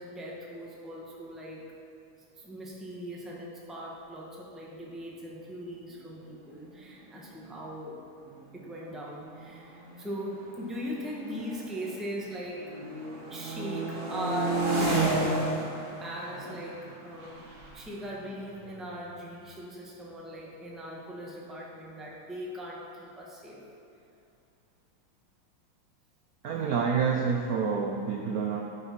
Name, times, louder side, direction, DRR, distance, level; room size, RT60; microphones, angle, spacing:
voice 1, 0.0-1.7 2.4-8.0 8.5-12.6 13.3-15.4 16.0-17.5 17.7-23.6, equal, ahead, -4 dB, 0.8 m, -39 dB
sound 1, 6.8-6.9 7.1-7.5 8.2-12.2 12.5-19.2, right 2 dB, 30° right, 1.6 m, -33 dB
voice 2, 26.4-28.6, right 6 dB, 80° right, 1 dB, 0.8 m, -28 dB
9.4 x 5.5 x 5.8 m, 2.7 s
omnidirectional pair, 2.3 m